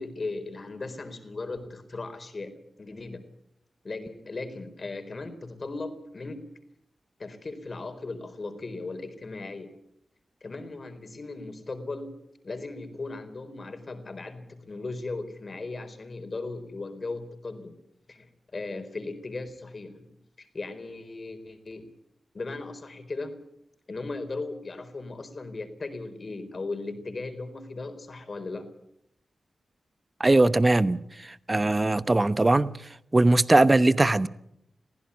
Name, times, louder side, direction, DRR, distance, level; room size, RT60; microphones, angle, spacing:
voice 1, 0.0-3.2 3.8-6.4 7.2-9.7 10.4-12.1 12.4-17.7 18.1-20.1 20.4-21.9 22.3-23.3 23.9-28.7, left 3 dB, 50° left, 4.1 m, -37 dB
voice 2, 30.2-31.0 31.5-32.7 33.1-34.3, right 2 dB, 30° right, 1.1 m, -20 dB
22.5 x 15.5 x 8.5 m
cardioid pair, 50°, 0 cm